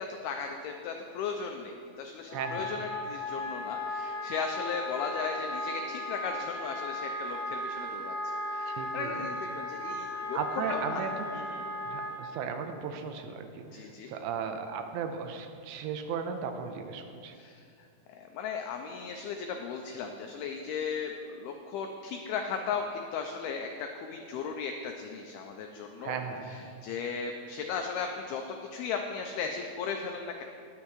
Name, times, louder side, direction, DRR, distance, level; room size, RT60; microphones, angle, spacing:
voice 1, 0.0-10.4 10.7-11.1 11.3-11.7 13.7-14.1 17.3-17.6 18.1-26.2 26.4-30.4, left 6 dB, 90° left, 4 dB, 2.2 m, -36 dB
Wind instrument woodwind instrument, 2.3-12.2, left 1 dB, 5° left, 2.1 m, -36 dB
voice 2, 2.3-2.8 8.8-9.1 10.1-11.3 11.8-17.3 26.0-26.7, right 6 dB, 85° right, 6 dB, 2.9 m, -36 dB
20.0 x 8.5 x 3.1 m, 2.4 s
omnidirectional pair, 5.2 m